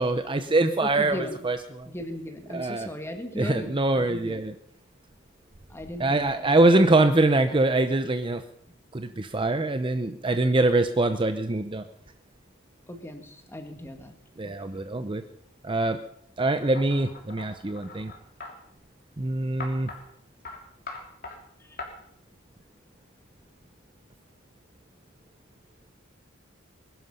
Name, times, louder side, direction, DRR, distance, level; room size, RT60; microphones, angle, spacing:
voice 1, 0.0-1.9 2.5-2.9 3.4-4.5 6.0-8.4 8.9-11.8 14.4-15.2 15.6-16.0 16.4-18.1 19.2-19.9, right 2 dB, 25° right, 8 dB, 0.7 m, -24 dB
voice 2, 0.8-1.4 1.9-4.4 5.7-6.6 12.9-14.1 14.4-14.5 21.7-21.8, left 1 dB, 10° left, 5 dB, 2.0 m, -37 dB
sound 1, 16.7-18.5 19.6-20.0 20.4-20.6 20.9-21.4 21.8-21.9, left 3 dB, 45° left, 3.5 m, -40 dB
21.5 x 12.0 x 5.6 m, 0.70 s
head